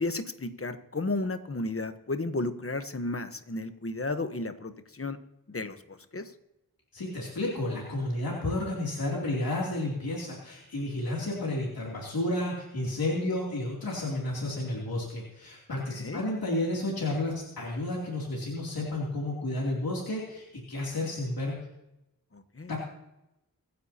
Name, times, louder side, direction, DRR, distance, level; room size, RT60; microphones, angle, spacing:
voice 1, 0.0-5.2 5.5-6.3 15.9-16.2 22.3-22.7, left 2 dB, 40° left, 10 dB, 1.1 m, -33 dB
voice 2, 6.9-21.7 22.7-22.8, left 1 dB, 85° left, -3 dB, 3.0 m, -31 dB
24.5 x 9.9 x 2.9 m, 0.88 s
wide cardioid pair, 60°, 35 cm